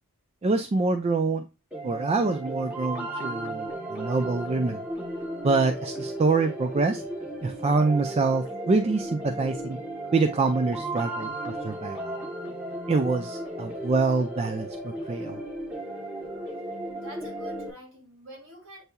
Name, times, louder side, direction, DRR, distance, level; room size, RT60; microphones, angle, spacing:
voice 1, 0.4-1.5 1.8-4.8 5.4-7.0 7.4-9.8 10.1-12.2 12.9-15.4, right 3 dB, 30° right, 0.3 m, -25 dB
sound 1, 1.7-17.7, right 1 dB, 5° right, 0.9 m, -35 dB
voice 2, 16.9-18.8, right 1 dB, 60° right, 1.9 m, -47 dB
7.9 x 2.8 x 2.2 m
head